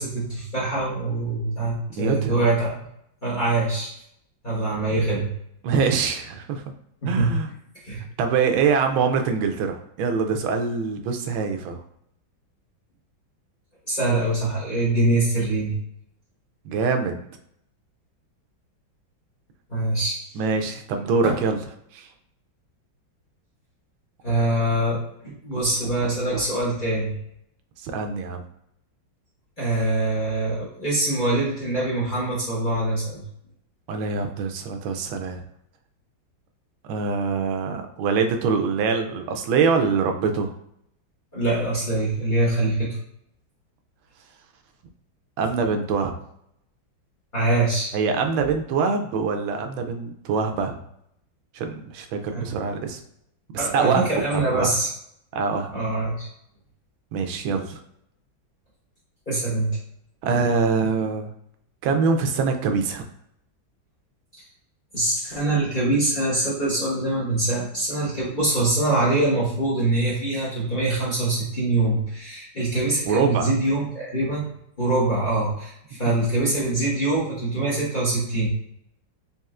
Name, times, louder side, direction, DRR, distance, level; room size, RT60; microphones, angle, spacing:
voice 1, 0.0-2.7 3.2-3.9 4.4-5.3 7.0-7.3 7.8-8.0 13.9-15.7 19.7-20.2 21.2-21.3 24.2-25.0 25.4-27.1 29.6-33.2 41.3-42.9 47.3-47.9 52.3-52.5 53.5-54.9 55.7-56.3 59.3-59.7 64.9-74.5 74.8-78.5, right 2 dB, 30° left, -7 dB, 1.0 m, -24 dB
voice 2, 2.0-2.4 5.6-6.7 7.1-7.5 8.2-11.8 16.6-17.2 20.3-21.6 21.9-22.1 27.8-28.4 33.9-35.4 36.9-40.5 45.4-46.1 47.9-50.8 51.5-53.0 53.5-54.0 54.3-54.7 55.3-55.7 57.1-57.8 60.2-61.3 61.8-63.0 73.0-73.5, right 5 dB, 85° right, 5 dB, 1.4 m, -24 dB
4.2 x 3.5 x 2.4 m, 0.73 s
omnidirectional pair, 2.1 m